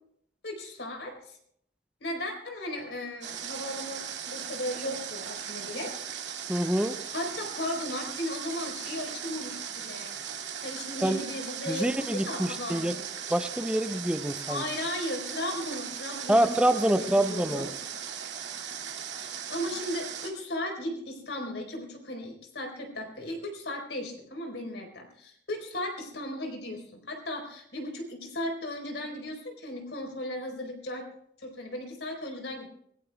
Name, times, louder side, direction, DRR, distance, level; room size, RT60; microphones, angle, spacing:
voice 1, 0.4-1.4 2.0-6.0 7.1-10.2 10.6-13.1 14.5-16.5 16.9-17.7 19.1-31.1 31.4-32.7, left 1 dB, 85° left, 2 dB, 4.1 m, -36 dB
Water, 3.2-20.3, right 8 dB, 85° right, 2.3 m, -38 dB
voice 2, 6.5-7.0 11.0-11.2 11.7-13.0 13.3-14.6 16.3-17.7, right 1 dB, 5° right, 8 dB, 0.6 m, -26 dB
26.0 x 18.0 x 2.3 m, 0.71 s
head